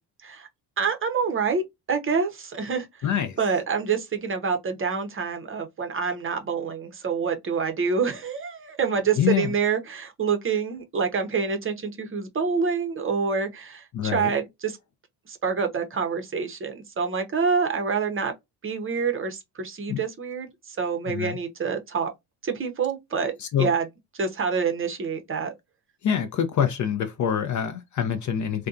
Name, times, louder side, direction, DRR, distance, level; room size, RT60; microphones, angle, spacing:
voice 1, 0.8-3.1 3.4-14.8 15.3-18.3 18.6-22.1 22.4-23.8 24.1-25.5, right 5 dB, 30° right, 0.7 m, -27 dB
voice 2, 3.0-3.4 9.2-9.5 13.9-14.3 19.9-20.0 21.1-21.4 23.4-23.7 26.0-28.7, left 9 dB, 40° left, 0.5 m, -25 dB
2.6 x 2.2 x 2.3 m
cardioid pair, 100°, 46 cm